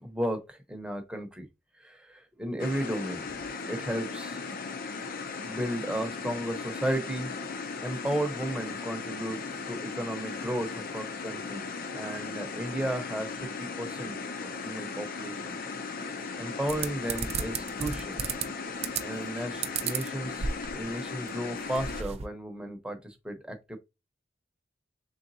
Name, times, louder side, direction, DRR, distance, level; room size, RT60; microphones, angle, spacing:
voice 1, 0.0-1.5 1.8-3.2 3.7-4.4 5.4-7.3 7.8-9.4 9.7-11.6 11.9-14.2 14.6-15.6 16.4-18.2 19.0-23.8, right 1 dB, 5° right, 0.7 m, -34 dB
sound 1, 2.6-22.0, left 4 dB, 50° left, 0.5 m, -37 dB
sound 2, 16.7-18.4 18.8-19.3 19.6-20.9 21.3-21.4 21.6-22.2, right 6 dB, 35° right, 0.4 m, -33 dB
3.9 x 3.4 x 2.7 m
head